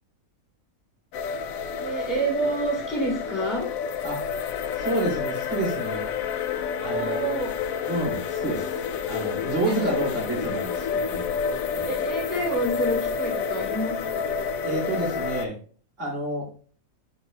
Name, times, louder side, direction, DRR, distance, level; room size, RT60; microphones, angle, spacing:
sound 1, 1.1-15.5, left 6 dB, 80° left, 1.0 m, -29 dB
voice 1, 1.8-3.7 6.8-7.5 9.7-9.9 11.9-14.2, right 2 dB, 10° left, -3 dB, 2.9 m, -28 dB
voice 2, 4.7-6.1 6.8-7.2 7.9-8.8 9.0-11.2 11.7-11.8 14.6-15.6 16.0-16.5, right 2 dB, 55° right, -4 dB, 3.0 m, -29 dB
12.5 x 4.5 x 2.2 m, 0.42 s
omnidirectional pair, 1.5 m